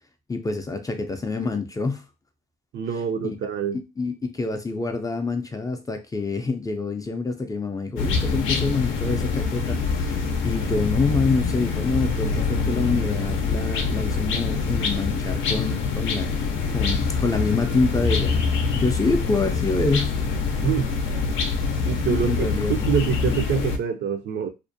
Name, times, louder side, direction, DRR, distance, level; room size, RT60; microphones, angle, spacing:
voice 1, 0.3-2.0 3.2-3.4 3.7-16.3 16.7-20.2 22.1-23.0, left 3 dB, 20° left, 0.3 m, -26 dB
voice 2, 2.7-3.8 20.6-21.0 21.8-24.5, right 7 dB, 60° right, 0.5 m, -25 dB
sound 1, 8.0-23.8, left 4 dB, 75° left, 0.5 m, -25 dB
2.5 x 2.0 x 2.6 m
cardioid pair, 90°, 20 cm